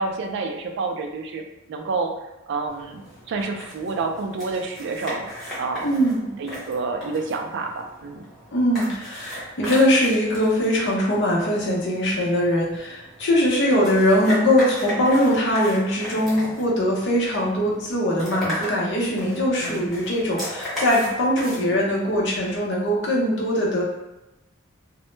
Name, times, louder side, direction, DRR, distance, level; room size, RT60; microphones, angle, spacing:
voice 1, 0.0-2.1 2.5-5.3 5.6-6.0 6.4-8.3 19.6-20.0, right 3 dB, 60° right, 4 dB, 0.3 m, -29 dB
sound 1, 2.7-22.5, equal, ahead, 0.9 m, -37 dB
voice 2, 5.8-6.3 8.5-23.8, equal, 60° left, -3 dB, 0.6 m, -21 dB
2.0 x 2.0 x 3.1 m, 0.96 s
head